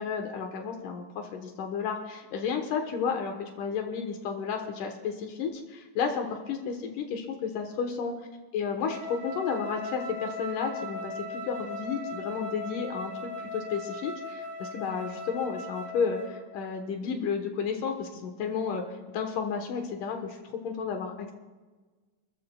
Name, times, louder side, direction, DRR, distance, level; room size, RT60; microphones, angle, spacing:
voice 1, 0.0-8.1 8.5-13.1 13.4-20.4 20.6-21.3, left 6 dB, 80° left, 3 dB, 2.7 m, -32 dB
Wind instrument woodwind instrument, 8.8-16.5, left 1 dB, 5° right, 3.7 m, -38 dB
28.5 x 13.5 x 2.3 m, 1.3 s
omnidirectional pair, 3.7 m